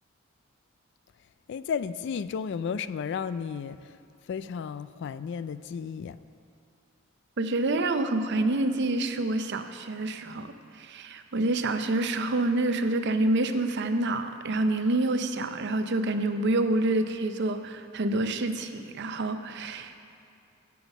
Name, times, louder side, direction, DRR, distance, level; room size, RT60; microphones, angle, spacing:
voice 1, 1.5-4.0 4.3-6.2, left 6 dB, 60° left, 14 dB, 0.3 m, -33 dB
voice 2, 7.4-20.1, right 2 dB, 60° right, 8 dB, 0.6 m, -27 dB
9.3 x 7.2 x 7.1 m, 2.5 s
head